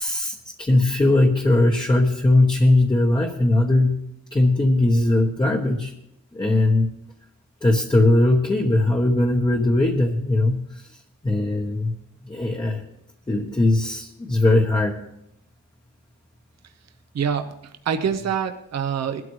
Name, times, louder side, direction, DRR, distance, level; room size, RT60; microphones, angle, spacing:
voice 1, 0.0-3.9 4.3-5.9 6.3-6.9 7.6-10.9 11.2-11.9 12.2-12.8 13.3-15.0, left 2 dB, 15° left, 1 dB, 1.0 m, -19 dB
voice 2, 17.1-19.2, right 7 dB, 55° right, 6 dB, 0.9 m, -26 dB
20.5 x 12.5 x 3.2 m, 0.80 s
wide cardioid pair, 145°, 32 cm